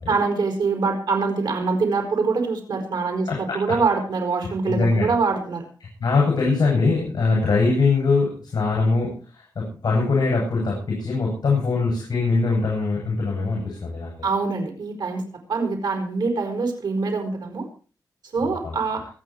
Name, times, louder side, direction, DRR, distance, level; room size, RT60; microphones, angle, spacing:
voice 1, 0.1-5.7 14.2-15.2 15.5-17.7 18.3-19.0, right 4 dB, 75° right, 4 dB, 4.9 m, -24 dB
voice 2, 4.6-5.1 5.8-14.1 18.4-18.8, left 3 dB, 65° left, -2 dB, 8.0 m, -22 dB
24.5 x 9.3 x 4.6 m, 0.37 s
wide cardioid pair, 115°, 7 cm